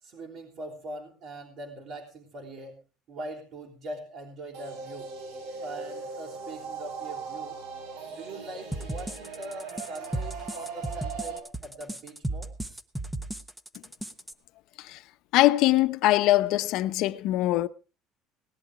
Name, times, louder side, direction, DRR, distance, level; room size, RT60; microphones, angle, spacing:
voice 1, 0.0-2.8 3.1-5.1 5.6-7.6 8.1-12.5, right 1 dB, 50° right, 3.5 m, -42 dB
sound 1, 4.5-11.4, right 5 dB, 75° right, 4.7 m, -39 dB
sound 2, 8.7-14.3, right 1 dB, 5° right, 1.0 m, -35 dB
voice 2, 15.3-17.7, left 16 dB, 60° left, 0.8 m, -22 dB
19.0 x 11.0 x 4.8 m
cardioid pair, 160°, 0 cm